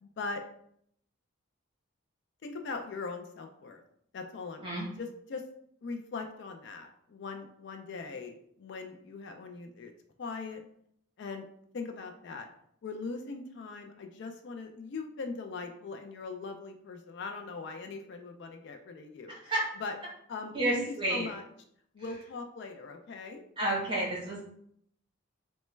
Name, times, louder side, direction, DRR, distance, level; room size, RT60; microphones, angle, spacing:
voice 1, 0.0-0.4 2.4-3.8 4.1-5.4 5.8-9.9 10.2-10.6 11.2-11.4 11.7-12.5 12.8-19.4 19.8-20.0 20.3-21.4 21.9-23.4, left 4 dB, 55° left, 5 dB, 0.3 m, -40 dB
voice 2, 19.3-19.6 20.5-21.3 23.6-24.4, right 1 dB, 25° right, -4 dB, 1.0 m, -30 dB
3.1 x 2.1 x 3.1 m, 0.70 s
head